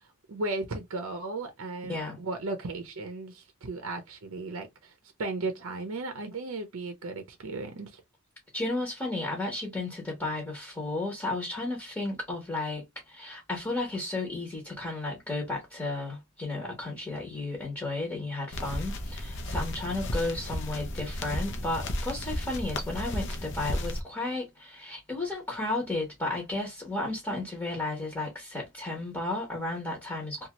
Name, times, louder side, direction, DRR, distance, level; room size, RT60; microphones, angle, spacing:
voice 1, 0.3-4.9 5.2-8.0, right 2 dB, 65° right, 0.6 m, -35 dB
voice 2, 8.5-30.5, left 2 dB, 10° left, 0.9 m, -33 dB
sound 1, 18.5-24.0, left 1 dB, 55° left, 0.6 m, -34 dB
2.8 x 2.4 x 2.9 m
head